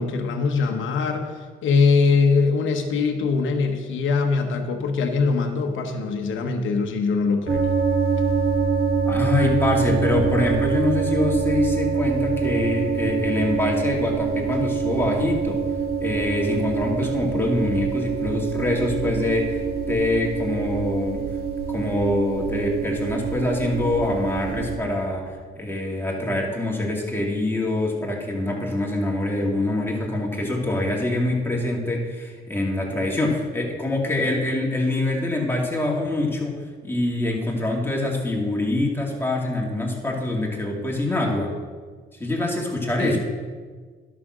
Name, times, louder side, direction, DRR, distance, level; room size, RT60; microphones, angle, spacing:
voice 1, 0.0-7.7 43.0-43.2, left 4 dB, 80° left, 4 dB, 1.1 m, -22 dB
sound 1, 7.5-24.8, right 6 dB, 50° right, 2.2 m, -25 dB
voice 2, 9.1-15.6 16.0-21.3 21.7-41.5 42.2-43.2, left 2 dB, 10° left, -1 dB, 2.4 m, -25 dB
11.0 x 6.1 x 6.3 m, 1.5 s
cardioid pair, 90°, 20 cm